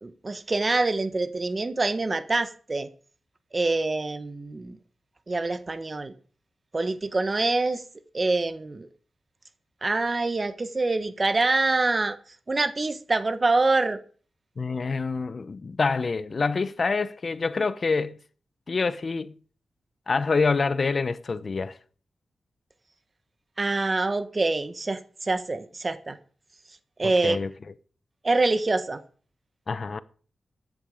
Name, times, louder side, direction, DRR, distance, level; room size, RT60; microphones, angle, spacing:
voice 1, 0.0-2.9 3.5-4.8 5.3-6.1 6.7-7.8 8.1-8.9 9.8-12.2 12.5-14.0 23.6-26.2 27.0-27.4 28.2-29.0, right 3 dB, 35° right, 1.4 m, -25 dB
voice 2, 14.6-18.2 18.7-19.3 20.1-21.8 27.0-27.5 29.7-30.0, left 4 dB, 50° left, 0.8 m, -26 dB
15.0 x 10.5 x 5.1 m
cardioid pair, 80°, 0 cm